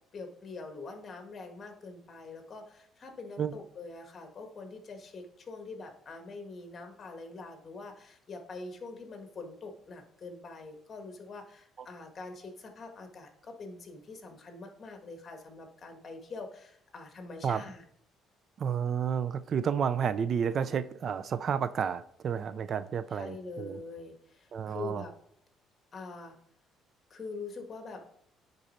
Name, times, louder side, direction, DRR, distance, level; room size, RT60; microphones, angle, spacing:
voice 1, 0.1-17.8 23.1-25.1 25.9-26.4 27.1-28.0, left 3 dB, 35° left, 5 dB, 1.6 m, -44 dB
voice 2, 18.6-23.8 24.5-25.0, right 7 dB, 45° right, 14 dB, 0.4 m, -31 dB
9.9 x 4.0 x 4.4 m, 0.68 s
cardioid pair, 120°, 0 cm